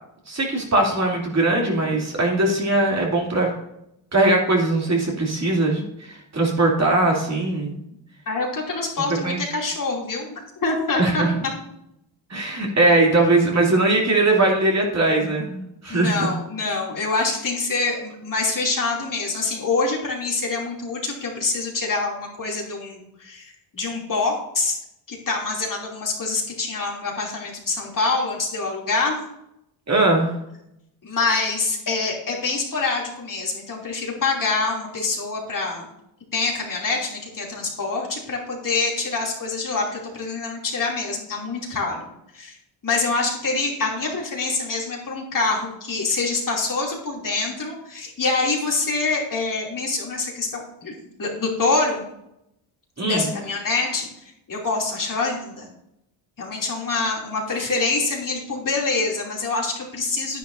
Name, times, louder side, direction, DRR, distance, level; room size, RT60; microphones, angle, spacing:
voice 1, 0.3-3.5 4.1-7.7 9.2-9.4 11.0-11.3 12.3-16.3 29.9-30.4 53.0-53.3, right 2 dB, 35° right, -1 dB, 2.8 m, -20 dB
voice 2, 8.3-11.3 15.9-24.8 25.1-29.2 31.0-35.9 36.3-42.1 42.3-42.6 42.8-52.0 53.0-54.1 54.5-55.7 56.4-60.4, left 3 dB, 40° left, -2 dB, 2.9 m, -25 dB
10.5 x 10.0 x 2.7 m, 0.80 s
cardioid pair, 95°, 48 cm